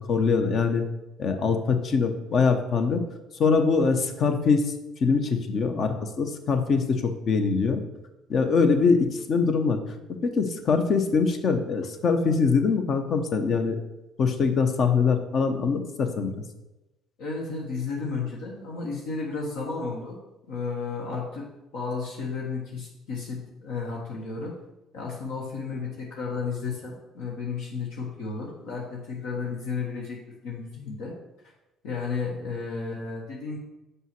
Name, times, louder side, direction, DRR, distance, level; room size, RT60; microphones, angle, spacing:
voice 1, 0.1-0.8 1.2-3.0 3.4-4.7 5.0-7.8 8.3-9.8 10.2-13.8 14.2-16.3, left 5 dB, 55° left, 7 dB, 0.9 m, -23 dB
voice 2, 17.2-20.2 20.5-21.5 21.7-24.5 24.9-30.2 30.4-31.1 31.8-33.6, left 4 dB, 75° left, -3 dB, 1.3 m, -33 dB
5.5 x 4.9 x 5.9 m, 0.99 s
hypercardioid pair, 65°, 0 cm